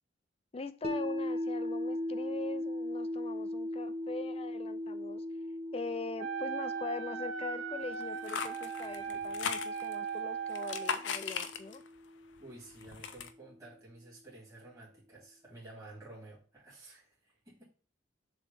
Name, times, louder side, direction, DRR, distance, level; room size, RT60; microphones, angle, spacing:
voice 1, 0.5-5.2 5.7-11.8, left 3 dB, 30° left, 12 dB, 0.5 m, -42 dB
sound 1, 0.8-13.0, left 1 dB, 35° right, 0.8 m, -39 dB
Wind instrument woodwind instrument, 6.2-11.0, right 6 dB, 90° right, 0.7 m, -39 dB
sound 2, 8.0-10.1 10.5-12.0 12.4-13.3, left 6 dB, 75° left, 0.6 m, -38 dB
voice 2, 12.4-17.7, right 2 dB, 15° right, -7 dB, 2.7 m, -52 dB
7.0 x 3.2 x 5.2 m, 0.36 s
head